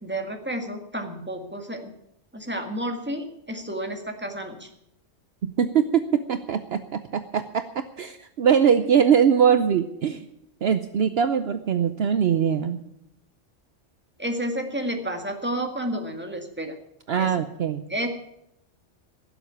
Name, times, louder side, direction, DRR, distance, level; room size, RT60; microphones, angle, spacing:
voice 1, 0.0-1.9 2.3-4.7 14.2-16.7 17.2-17.3 17.9-18.1, right 1 dB, 10° right, 4 dB, 1.8 m, -31 dB
voice 2, 5.4-10.3 10.6-12.8 17.1-17.8, right 7 dB, 60° right, 10 dB, 0.9 m, -22 dB
16.5 x 7.6 x 9.5 m, 0.81 s
omnidirectional pair, 1.2 m